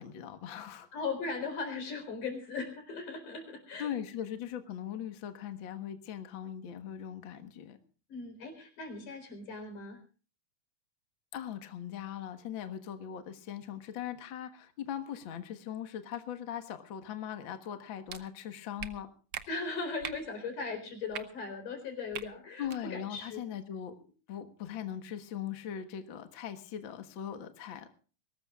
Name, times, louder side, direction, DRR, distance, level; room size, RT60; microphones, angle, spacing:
voice 1, 0.0-0.9 3.8-7.8 11.3-19.1 22.6-24.0 24.3-27.9, left 9 dB, 50° left, 8 dB, 1.7 m, -40 dB
voice 2, 0.9-3.9 8.1-10.0 19.5-23.5, left 4 dB, 80° left, 6 dB, 5.6 m, -38 dB
sound 1, 18.1-18.2 18.8-18.9 19.3-19.4 20.0-20.2 21.1-21.2 22.1-22.3 22.6-22.8, right 9 dB, 90° right, 1.0 m, -39 dB
22.5 x 18.5 x 2.4 m, 0.38 s
omnidirectional pair, 3.6 m